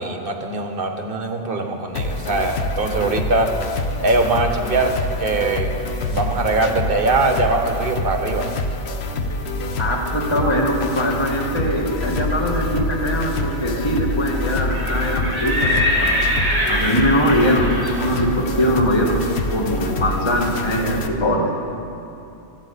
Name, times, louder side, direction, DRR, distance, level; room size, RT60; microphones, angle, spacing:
voice 1, 0.0-3.5 4.0-8.5, right 3 dB, 50° right, 5 dB, 1.2 m, -22 dB
sound 1, 1.9-21.1, left 2 dB, 60° left, 1.1 m, -26 dB
voice 2, 9.8-16.1 16.7-19.2 19.5-21.5, equal, 25° left, 0 dB, 1.5 m, -21 dB
Livestock farm animals working animals, 14.6-20.4, left 1 dB, 15° right, 2.6 m, -25 dB
16.5 x 15.0 x 4.0 m, 2.7 s
omnidirectional pair, 1.3 m